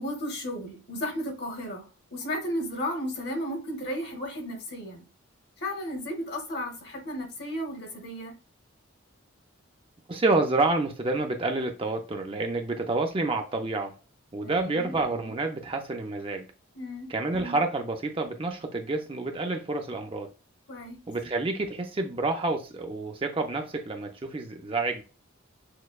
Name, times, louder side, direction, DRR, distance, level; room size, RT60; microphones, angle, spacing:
voice 1, 0.0-5.0 5.6-8.3 14.4-15.0 16.7-17.1 20.7-21.0, equal, 50° left, 1.1 m, -34 dB
voice 2, 10.1-13.9 14.3-16.5 17.1-20.3 21.1-25.0, right 2 dB, 25° right, 0.4 m, -28 dB
6.3 x 2.2 x 2.3 m
head